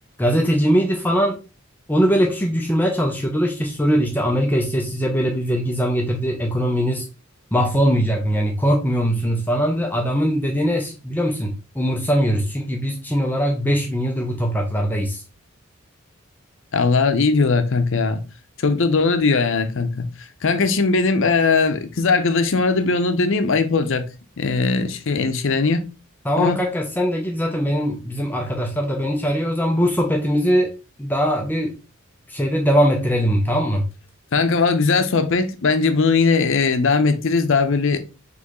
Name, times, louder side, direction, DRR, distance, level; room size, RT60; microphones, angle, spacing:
voice 1, 0.2-1.4 1.9-7.1 7.5-15.2 26.3-30.7 31.0-31.8 32.3-33.9, equal, 10° left, 0.5 m, -21 dB
voice 2, 16.7-18.2 18.6-20.1 20.4-24.1 24.4-25.9 26.4-26.6 34.3-38.0, left 4 dB, 65° left, 0.6 m, -19 dB
4.3 x 3.1 x 3.0 m
head